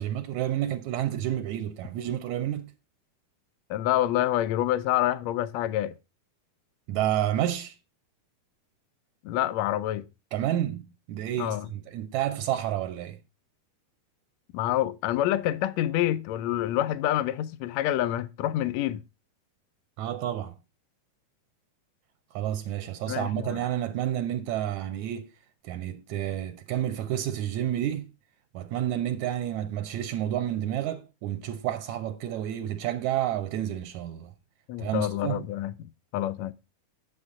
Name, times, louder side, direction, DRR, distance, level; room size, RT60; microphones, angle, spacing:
voice 1, 0.0-2.7 6.9-7.8 10.3-13.2 20.0-20.5 22.3-25.3 25.6-28.1 28.5-34.3 34.8-35.4, right 11 dB, 75° right, 1.8 m, -30 dB
voice 2, 3.7-5.9 9.2-10.0 11.4-11.7 14.5-19.0 23.1-23.6 34.7-35.8 36.1-36.5, left 13 dB, 85° left, 1.5 m, -27 dB
9.1 x 8.8 x 3.7 m
omnidirectional pair, 3.8 m